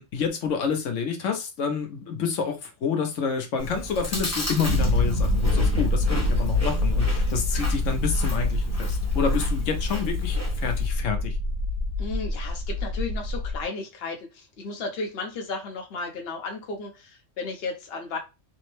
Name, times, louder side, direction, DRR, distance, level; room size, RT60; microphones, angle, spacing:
voice 1, 0.0-11.3, left 6 dB, 80° left, 1.1 m, -28 dB
Chewing mastication, 3.6-10.9, equal, 15° left, 0.8 m, -35 dB
sound 1, 4.7-13.6, left 2 dB, 60° right, 0.8 m, -25 dB
voice 2, 12.0-18.2, left 4 dB, 55° left, 1.0 m, -34 dB
3.4 x 2.1 x 3.1 m
omnidirectional pair, 1.3 m